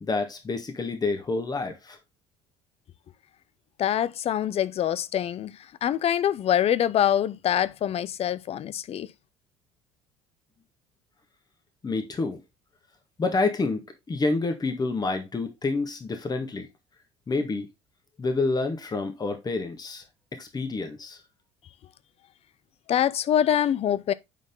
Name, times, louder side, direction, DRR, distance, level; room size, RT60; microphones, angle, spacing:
voice 1, 0.0-2.0 11.8-12.4 13.2-16.7 17.3-17.7 18.2-20.0 20.3-21.2, left 3 dB, 25° left, 1.7 m, -28 dB
voice 2, 3.8-5.5 5.8-9.1 22.9-24.1, left 10 dB, 45° left, 0.6 m, -24 dB
9.2 x 4.2 x 3.8 m
hypercardioid pair, 60°, 15 cm